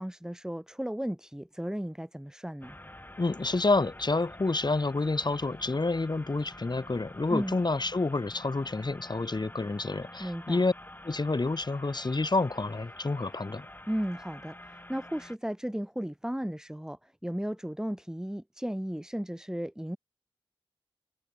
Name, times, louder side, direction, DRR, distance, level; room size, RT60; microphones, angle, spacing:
voice 1, 0.0-2.8 7.3-7.6 10.2-10.6 13.9-20.0, equal, 5° right, 1.4 m, -35 dB
sound 1, 2.6-15.4, left 1 dB, 20° left, 4.1 m, -48 dB
voice 2, 3.2-10.7 11.0-13.7, left 3 dB, 45° left, 2.4 m, -29 dB
cardioid pair, 50°, 10 cm